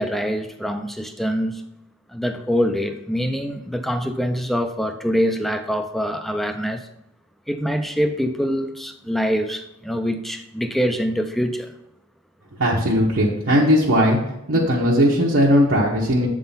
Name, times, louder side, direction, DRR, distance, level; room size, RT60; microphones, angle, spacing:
voice 1, 0.0-1.6 2.1-6.9 7.5-11.7, equal, ahead, 7 dB, 0.5 m, -24 dB
voice 2, 12.6-14.2 14.5-16.3, equal, 75° right, -5 dB, 1.1 m, -18 dB
8.0 x 3.8 x 5.6 m, 0.83 s
head